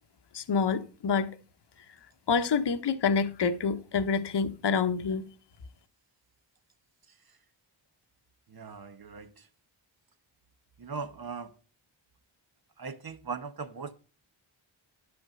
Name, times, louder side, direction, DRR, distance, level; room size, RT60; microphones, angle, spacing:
voice 1, 0.3-1.3 2.3-5.2, left 5 dB, 60° left, 1.0 m, -27 dB
voice 2, 8.5-9.3 10.8-11.5 12.8-13.9, right 5 dB, 50° right, 1.1 m, -39 dB
11.5 x 4.4 x 6.8 m
wide cardioid pair, 80°, 47 cm